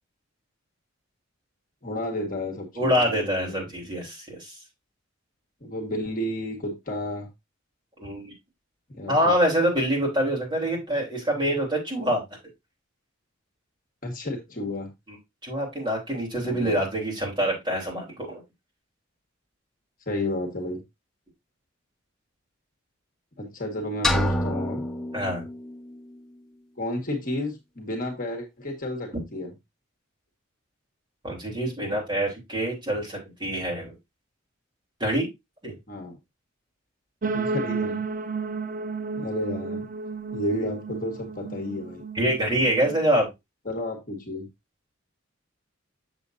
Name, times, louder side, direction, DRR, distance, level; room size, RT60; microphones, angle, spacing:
voice 1, 1.8-3.7 5.6-7.3 8.9-9.3 14.0-14.9 16.4-16.8 20.1-20.8 23.4-24.9 26.8-29.5 35.9-36.2 37.3-38.0 39.2-39.9 40.3-42.0 43.6-44.5, left 1 dB, 40° left, 1.5 m, -32 dB
voice 2, 2.8-4.5 8.0-8.3 9.1-12.2 15.1-15.2 15.4-18.4 25.1-25.4 31.2-33.9 35.0-35.3 35.6-35.7 42.2-43.3, equal, 25° right, 3.5 m, -25 dB
sound 1, 24.0-26.0, equal, 5° left, 1.2 m, -27 dB
sound 2, 37.2-43.1, right 4 dB, 40° right, 0.6 m, -32 dB
7.2 x 6.9 x 2.6 m
head